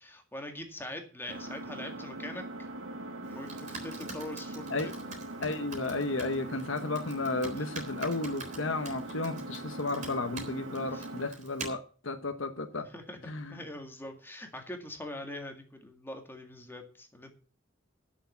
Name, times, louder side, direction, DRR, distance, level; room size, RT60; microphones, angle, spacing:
voice 1, 0.0-2.7 3.3-4.9 10.9-11.1 12.8-13.2 13.5-17.3, left 1 dB, 10° left, 4 dB, 2.0 m, -43 dB
Engine, 1.3-11.3, right 2 dB, 85° right, 2.5 m, -41 dB
Computer keyboard, 3.2-11.7, right 3 dB, 35° right, 3.8 m, -47 dB
voice 2, 5.4-12.9 13.2-13.6, left 2 dB, 65° left, 7 dB, 1.1 m, -33 dB
11.5 x 6.8 x 7.1 m, 0.40 s
head